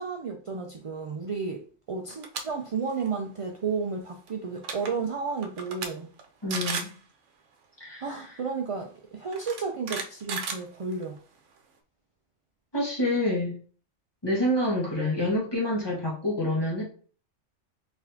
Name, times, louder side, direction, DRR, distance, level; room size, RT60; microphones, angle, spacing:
voice 1, 0.0-1.6 1.9-6.1 8.0-11.2, right 5 dB, 60° right, 2 dB, 0.3 m, -32 dB
sound 1, 2.1-2.4 2.8-3.1 4.3-4.4 4.6-4.9 5.4-5.9 6.2-6.3 6.5-7.0 8.2-8.3 9.3-11.2, right 5 dB, 90° right, 1.0 m, -34 dB
voice 2, 6.4-6.9 7.8-8.0 12.7-13.6 14.2-16.8, left 1 dB, 20° left, -4 dB, 1.4 m, -27 dB
4.1 x 3.4 x 2.7 m, 0.42 s
omnidirectional pair, 1.2 m